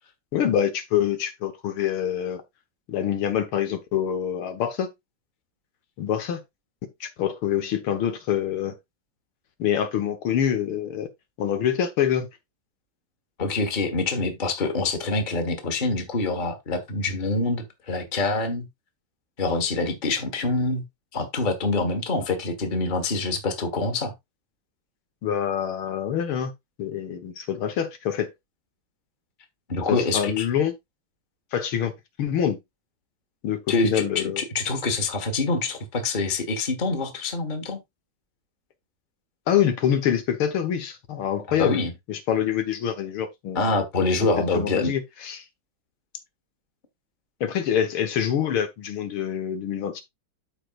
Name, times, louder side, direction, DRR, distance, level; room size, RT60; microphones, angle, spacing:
voice 1, 0.3-2.4 2.9-4.9 6.0-6.4 7.0-8.8 9.6-11.1 11.4-12.3 25.2-26.5 26.8-28.3 29.9-30.7 31.5-31.9 32.2-32.6 33.4-34.4 39.5-41.8 42.1-43.8 44.4-45.4 47.4-50.0, left 9 dB, 70° left, 2.2 m, -25 dB
voice 2, 13.4-18.7 19.4-20.8 21.1-24.1 29.7-30.4 33.7-37.8 41.6-41.9 43.5-44.9, left 3 dB, 25° left, 1.5 m, -25 dB
13.5 x 4.7 x 2.5 m
omnidirectional pair, 2.4 m